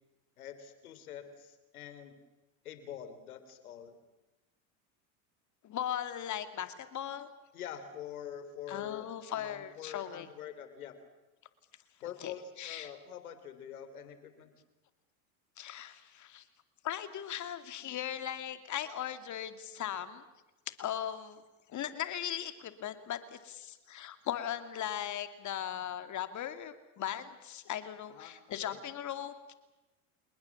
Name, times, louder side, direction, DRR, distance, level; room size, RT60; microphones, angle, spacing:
voice 1, 0.4-2.2 2.6-4.0 7.5-11.0 12.0-14.5 28.1-28.8, left 9 dB, 90° left, 11 dB, 3.6 m, -45 dB
voice 2, 5.6-7.3 8.7-10.3 12.2-12.3 12.6-12.9 15.6-16.4 16.8-20.2 20.8-21.4 21.7-29.5, left 10 dB, 40° left, 10 dB, 2.5 m, -38 dB
28.5 x 20.5 x 7.3 m, 1.0 s
supercardioid pair, 100°, 42 cm